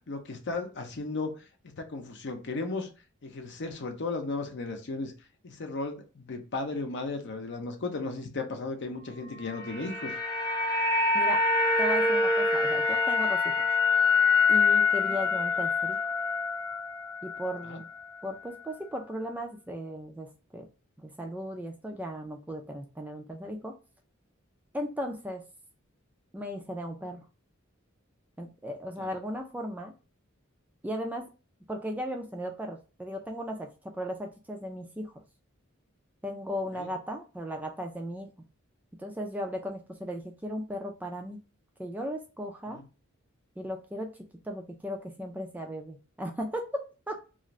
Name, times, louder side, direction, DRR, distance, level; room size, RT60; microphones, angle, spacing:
voice 1, 0.1-1.4 1.8-2.9 3.2-5.1 5.4-10.1 15.0-15.2 17.7-17.8 29.0-29.1 36.7-36.9 42.7-42.8, left 3 dB, 55° left, 5 dB, 0.6 m, -35 dB
sound 1, 9.4-17.7 18.0-18.1, left 4 dB, 15° left, 0.7 m, -25 dB
voice 2, 11.8-13.7 14.5-16.0 17.2-17.9 18.2-20.7 21.0-23.7 24.7-25.4 26.3-27.2 28.4-29.9 30.8-31.3 31.7-35.1 36.2-38.3 39.0-41.4 41.8-42.8 43.6-44.1 44.4-47.1, equal, 10° right, 3 dB, 0.3 m, -36 dB
2.5 x 2.4 x 3.0 m, 0.33 s
head